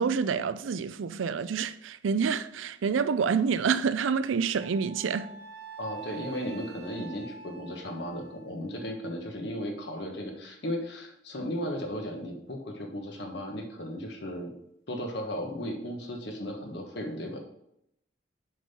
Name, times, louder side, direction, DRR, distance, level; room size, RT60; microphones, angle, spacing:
voice 1, 0.0-5.3, right 6 dB, 85° right, 0.4 m, -27 dB
Wind instrument woodwind instrument, 4.6-8.9, right 5 dB, 55° right, 1.5 m, -46 dB
voice 2, 5.8-14.5 14.9-17.4, equal, 60° left, 1.3 m, -35 dB
7.3 x 5.4 x 4.3 m
head